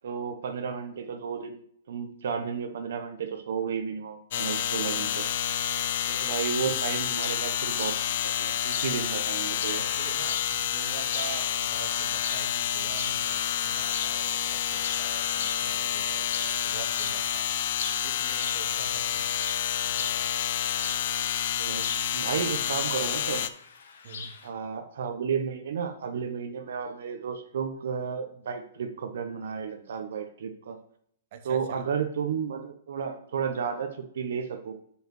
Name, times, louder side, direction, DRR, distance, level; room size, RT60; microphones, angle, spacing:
voice 1, 0.0-1.6 1.9-5.2 6.1-8.0 8.2-9.8 21.6-23.4 24.4-30.8 31.4-34.7, right 6 dB, 70° right, 6 dB, 0.8 m, -32 dB
sound 1, 4.3-23.5, left 10 dB, 55° left, 0.5 m, -29 dB
sound 2, 7.1-24.5, left 5 dB, 75° left, 1.3 m, -42 dB
voice 2, 9.7-17.5 18.0-19.4 19.9-20.3 24.0-24.4 31.3-31.9, right 7 dB, 45° right, 7 dB, 1.0 m, -45 dB
5.3 x 4.9 x 6.1 m, 0.67 s
hypercardioid pair, 155°, 0 cm